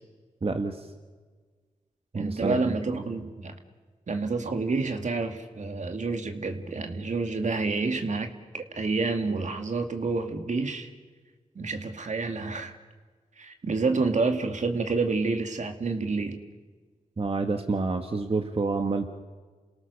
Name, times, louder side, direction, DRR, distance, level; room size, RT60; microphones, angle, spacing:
voice 1, 0.4-0.9 2.1-3.0 17.2-19.0, right 3 dB, 45° right, 5 dB, 1.7 m, -28 dB
voice 2, 2.1-3.5 4.1-8.3 8.5-10.9 11.6-12.7 13.4-16.4, right 3 dB, 60° right, 6 dB, 2.3 m, -28 dB
28.5 x 18.0 x 6.8 m, 1.4 s
cardioid pair, 40°, 14 cm